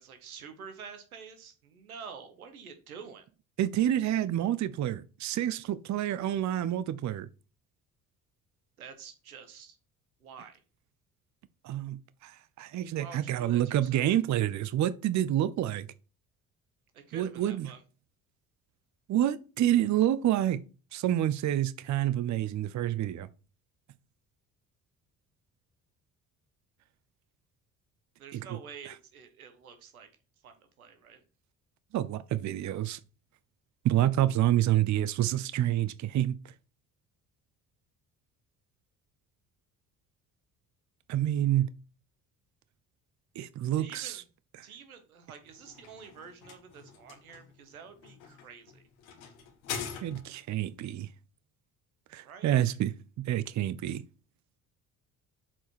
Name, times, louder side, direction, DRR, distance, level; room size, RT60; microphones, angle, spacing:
voice 1, 0.0-3.2 8.8-9.8 10.2-10.6 13.0-14.0 16.9-17.8 28.2-30.1 30.4-31.2 43.8-44.2 44.6-48.8 52.2-52.5, right 6 dB, 90° right, 1.1 m, -48 dB
voice 2, 3.6-7.3 11.6-15.9 17.1-17.7 19.1-20.6 20.9-23.3 28.3-28.4 31.9-33.0 33.8-36.4 41.1-41.7 43.4-44.2 50.0-51.1 52.1-52.9 53.2-54.0, right 12 dB, 45° right, 0.6 m, -28 dB
sound 1, 45.4-50.6, left 7 dB, 75° left, 1.6 m, -43 dB
7.4 x 4.6 x 4.5 m
hypercardioid pair, 50°, 42 cm